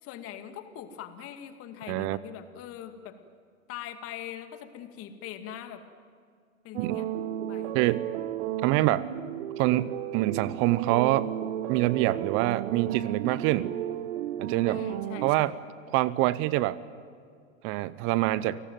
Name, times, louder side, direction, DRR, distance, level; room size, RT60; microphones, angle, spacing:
voice 1, 0.0-3.2 3.7-5.8 6.6-7.1 7.5-7.7 14.7-15.5, left 10 dB, 35° left, 7 dB, 2.2 m, -42 dB
voice 2, 1.9-2.2 6.8-7.0 7.7-8.1 8.6-9.1 9.6-11.3 11.7-13.7 14.4-14.8 15.2-15.6 15.9-16.8 17.6-18.6, right 17 dB, 30° right, 18 dB, 0.7 m, -25 dB
sound 1, 6.7-15.3, right 11 dB, 60° right, 1.1 m, -34 dB
29.5 x 18.5 x 9.2 m, 2.3 s
hypercardioid pair, 110°, 41 cm